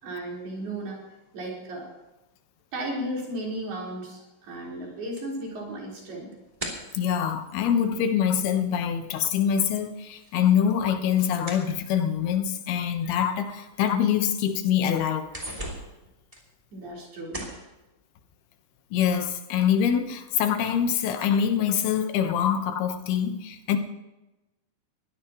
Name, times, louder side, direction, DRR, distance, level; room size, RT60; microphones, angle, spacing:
voice 1, 0.0-1.0 1.3-1.9 2.7-6.3 16.7-17.5, right 1 dB, 80° right, -3 dB, 6.6 m, -35 dB
sound 1, 5.2-8.9 9.1-12.4 13.1-13.2 13.7-13.8 14.1-14.7 15.0-17.0 17.3-17.7, right 1 dB, 10° right, 2.7 m, -41 dB
voice 2, 6.9-15.3 18.9-23.8, left 8 dB, 85° left, 7 dB, 3.2 m, -24 dB
22.5 x 16.0 x 3.1 m, 1.0 s
omnidirectional pair, 4.4 m